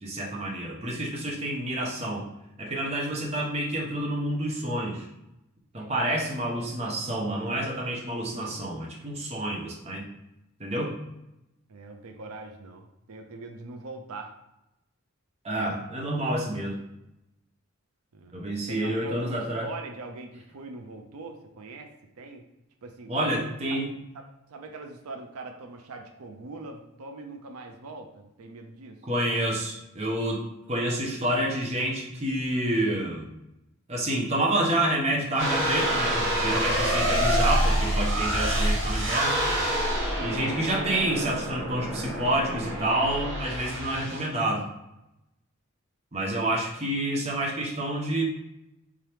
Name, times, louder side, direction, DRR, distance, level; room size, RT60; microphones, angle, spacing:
voice 1, 0.0-2.3 2.6-5.1 5.7-10.1 10.6-10.9 15.4-16.8 18.3-19.7 23.1-23.9 29.1-33.3 33.9-39.4 40.2-44.6 46.1-48.2, right 1 dB, 30° right, -2 dB, 0.7 m, -28 dB
voice 2, 11.7-14.3 18.1-18.4 18.7-21.9 22.2-22.4 22.8-23.4 24.1-24.2 24.5-29.0 40.1-40.5 46.2-46.5, right 3 dB, 85° right, 4 dB, 0.5 m, -42 dB
sound 1, 35.4-44.2, equal, 55° right, 1.3 m, -27 dB
3.6 x 2.9 x 3.3 m, 0.90 s
head